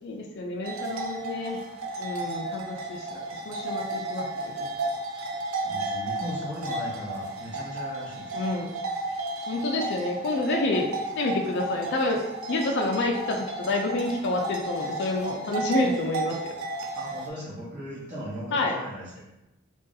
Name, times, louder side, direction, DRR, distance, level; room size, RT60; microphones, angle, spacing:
voice 1, 0.0-1.6 2.0-4.5 8.3-8.7 9.5-12.2 12.5-16.4 18.5-18.8, left 2 dB, 55° left, 2 dB, 0.4 m, -28 dB
sound 1, 0.6-17.3, right 2 dB, 75° right, 0.5 m, -33 dB
voice 2, 5.6-8.4 16.9-19.2, equal, 40° right, -10 dB, 0.9 m, -38 dB
3.0 x 2.6 x 3.8 m, 0.95 s
head